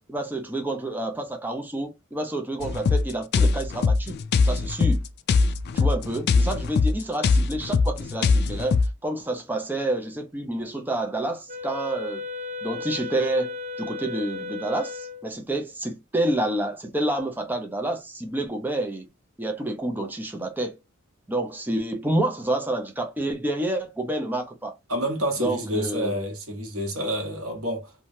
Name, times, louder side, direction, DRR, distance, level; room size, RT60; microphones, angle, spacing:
voice 1, 0.0-4.2 4.4-5.0 5.7-12.2 12.6-19.1 19.4-20.8 21.3-24.7 25.4-26.1, right 1 dB, 10° right, 0.5 m, -28 dB
sound 1, 2.6-8.9, left 4 dB, 50° left, 0.3 m, -22 dB
Wind instrument woodwind instrument, 11.5-15.3, left 3 dB, 35° right, 0.9 m, -35 dB
voice 2, 24.9-27.9, equal, 90° right, 1.2 m, -28 dB
3.1 x 2.3 x 2.6 m
head